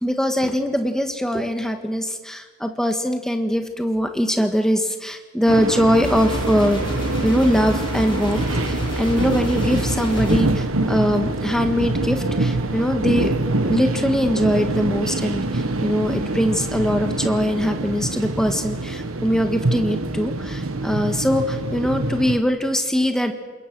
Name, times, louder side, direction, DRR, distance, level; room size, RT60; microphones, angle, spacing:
voice 1, 0.0-6.8 7.2-13.3 13.6-23.3, equal, 5° left, 5 dB, 1.6 m, -22 dB
sound 1, 5.5-22.4, right 2 dB, 80° right, 1.4 m, -25 dB
sound 2, 6.0-10.4, equal, 25° left, 3.5 m, -29 dB
27.5 x 21.5 x 6.2 m, 1.4 s
head